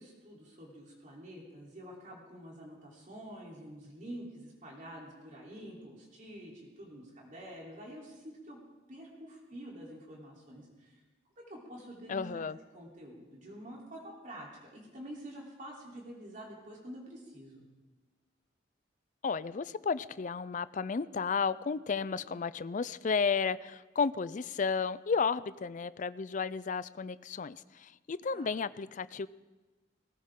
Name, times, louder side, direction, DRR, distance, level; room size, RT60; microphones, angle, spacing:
voice 1, 0.0-6.5 6.8-8.6 8.9-11.0 11.4-12.5 12.7-17.6 28.3-28.5, equal, 45° right, -3 dB, 3.5 m, -47 dB
voice 2, 12.1-12.6 19.2-27.6 28.1-29.3, left 5 dB, 45° left, 16 dB, 0.4 m, -32 dB
19.5 x 18.5 x 3.8 m, 1.2 s
head